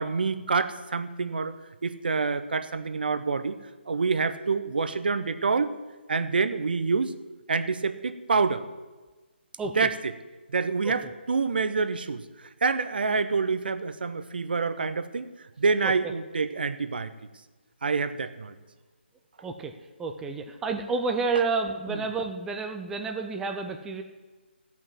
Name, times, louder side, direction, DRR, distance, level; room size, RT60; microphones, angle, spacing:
voice 1, 0.0-1.5 1.8-3.6 3.9-5.7 6.1-7.2 7.5-8.6 9.7-10.1 10.5-12.2 12.6-15.3 15.6-17.1 17.8-18.5 21.9-22.0, right 4 dB, 55° right, 11 dB, 0.8 m, -27 dB
voice 2, 9.6-9.9 10.8-10.9 19.4-19.7 20.0-24.0, right 4 dB, 5° right, 4 dB, 0.5 m, -30 dB
13.5 x 5.8 x 7.5 m, 1.3 s
figure-of-eight pair, 145°, 6 cm